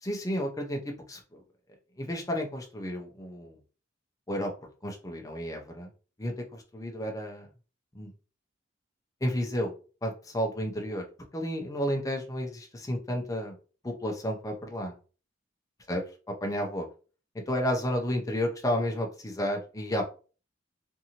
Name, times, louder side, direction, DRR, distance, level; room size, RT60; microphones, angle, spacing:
voice 1, 0.0-0.8 1.1-1.4 2.0-3.6 4.3-4.5 4.8-5.9 6.2-7.5 7.9-8.1 9.2-9.7 10.0-11.0 11.3-13.5 13.8-14.9 15.9-16.0 16.4-16.9 17.5-20.0, equal, 20° left, 2 dB, 0.5 m, -31 dB
2.6 x 2.6 x 2.8 m, 0.36 s
head